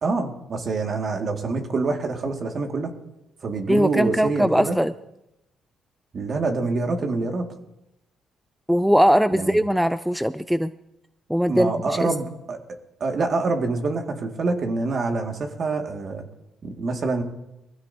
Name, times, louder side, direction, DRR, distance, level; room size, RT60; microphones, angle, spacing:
voice 1, 0.0-2.9 3.4-4.8 6.1-7.5 9.3-9.6 11.5-12.6 13.0-16.3 16.6-17.2, right 3 dB, 50° right, 3 dB, 2.1 m, -26 dB
voice 2, 3.7-4.9 8.7-10.7 11.3-11.7 12.0-12.1, equal, ahead, 13 dB, 0.4 m, -20 dB
23.0 x 16.0 x 2.8 m, 0.89 s
cardioid pair, 90°, 0 cm